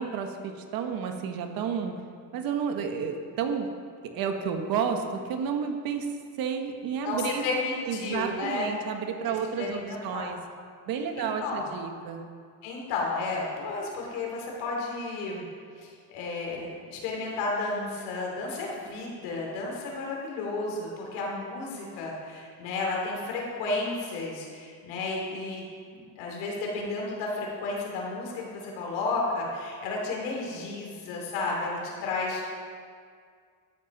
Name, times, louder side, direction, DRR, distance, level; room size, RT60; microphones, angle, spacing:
voice 1, 0.0-2.0 2.3-3.7 4.1-6.1 6.4-7.4 7.9-10.4 10.9-12.2, right 6 dB, 60° right, 5 dB, 1.5 m, -31 dB
voice 2, 7.0-8.8 9.3-10.3 11.1-11.7 12.6-15.4 15.8-32.5, left 3 dB, 90° left, -2 dB, 3.2 m, -32 dB
13.0 x 8.7 x 5.4 m, 2.1 s
cardioid pair, 120°, 39 cm